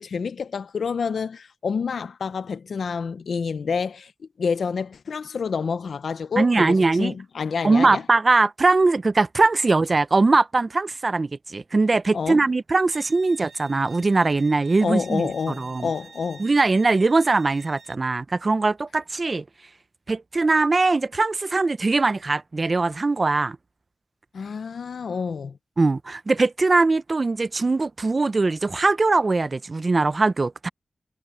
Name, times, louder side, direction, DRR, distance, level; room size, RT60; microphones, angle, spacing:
voice 1, 0.0-4.1 4.4-8.0 12.1-12.5 14.8-16.5 24.3-25.6, left 5 dB, 80° left, 0.7 m, -28 dB
voice 2, 6.4-7.1 7.6-15.9 16.4-19.4 20.1-23.6 25.8-30.7, right 3 dB, 50° right, 0.7 m, -21 dB
Bowed string instrument, 12.9-18.0, right 5 dB, 70° right, 7.3 m, -49 dB
cardioid pair, 45°, 0 cm